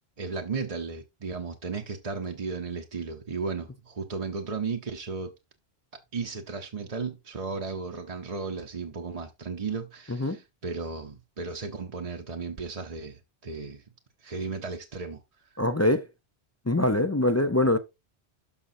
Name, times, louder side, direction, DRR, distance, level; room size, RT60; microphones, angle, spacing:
voice 1, 0.2-5.3 6.1-13.8 14.2-15.2, right 4 dB, 40° right, 0.8 m, -35 dB
voice 2, 15.6-16.0 16.7-17.8, left 1 dB, 20° left, 0.4 m, -23 dB
12.5 x 5.2 x 2.6 m
omnidirectional pair, 1.1 m